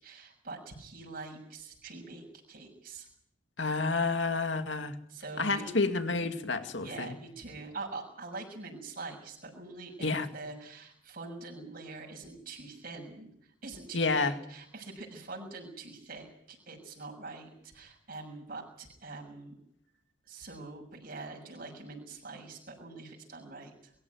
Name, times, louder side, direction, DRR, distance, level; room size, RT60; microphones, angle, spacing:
voice 1, 0.0-3.1 5.1-5.8 6.8-19.6 20.3-23.9, right 3 dB, 50° right, -1 dB, 6.5 m, -44 dB
voice 2, 3.6-5.0 5.4-7.2 10.0-10.3 13.9-14.3, left 3 dB, 75° left, 7 dB, 2.3 m, -29 dB
23.0 x 14.5 x 9.4 m, 0.71 s
head